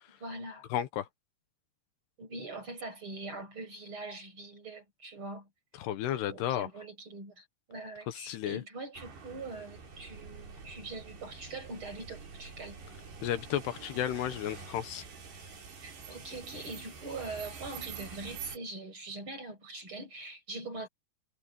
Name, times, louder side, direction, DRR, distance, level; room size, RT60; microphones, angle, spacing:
voice 1, 0.2-0.7 2.2-5.5 6.3-12.8 15.8-20.9, right 2 dB, 30° right, 7.0 m, -43 dB
voice 2, 0.7-1.1 5.8-6.7 8.1-8.6 13.2-15.0, left 11 dB, 80° left, 3.1 m, -33 dB
sound 1, 8.9-18.6, right 5 dB, 75° right, 7.7 m, -47 dB
omnidirectional pair, 4.9 m